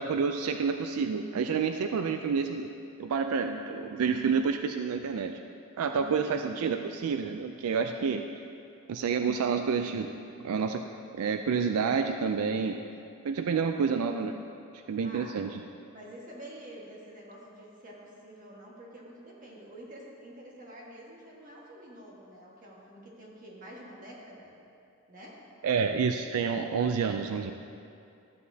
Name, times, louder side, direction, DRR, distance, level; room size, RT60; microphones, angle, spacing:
voice 1, 0.0-5.4 5.8-8.2 8.9-10.1 10.4-10.8 11.1-12.8 13.2-14.4 14.9-15.6 25.6-27.5, right 5 dB, 85° right, 6 dB, 0.4 m, -29 dB
voice 2, 14.8-15.3 15.9-24.5 25.1-25.4, right 1 dB, 40° right, -4 dB, 1.5 m, -48 dB
13.0 x 8.2 x 2.8 m, 2.5 s
head